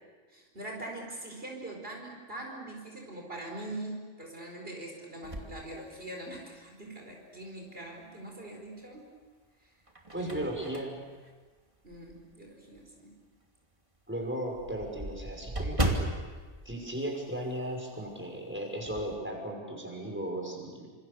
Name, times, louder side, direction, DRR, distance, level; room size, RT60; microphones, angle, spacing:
voice 1, 0.3-9.1 9.6-9.7 10.2-10.7 11.8-13.1, right 1 dB, 50° right, 0 dB, 5.0 m, -42 dB
sound 1, 5.2-6.6 7.1-7.2 8.7-9.2 9.7-12.3 12.7-12.9 13.2-13.3 13.6-13.7 14.0-17.8 18.0-18.2 18.6-19.2, right 1 dB, 25° right, 3.0 m, -36 dB
voice 2, 10.1-11.0 14.1-16.0 16.6-20.9, right 1 dB, 10° right, 0 dB, 5.9 m, -36 dB
28.0 x 27.0 x 6.9 m, 1.4 s
omnidirectional pair, 1.2 m